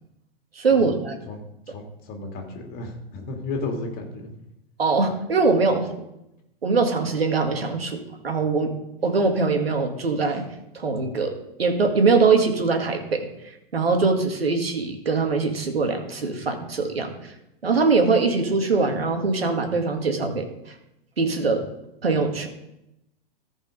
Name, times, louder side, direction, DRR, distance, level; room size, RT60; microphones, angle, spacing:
voice 1, 0.6-1.2 4.8-5.9 6.6-8.7 9.0-10.4 10.7-17.3 17.6-20.5 21.2-21.7 22.0-22.5, right 4 dB, 75° right, 4 dB, 2.0 m, -22 dB
voice 2, 1.7-4.3, left 2 dB, 30° left, 2 dB, 2.6 m, -33 dB
14.5 x 5.3 x 5.3 m, 0.87 s
figure-of-eight pair, 105°, 30 cm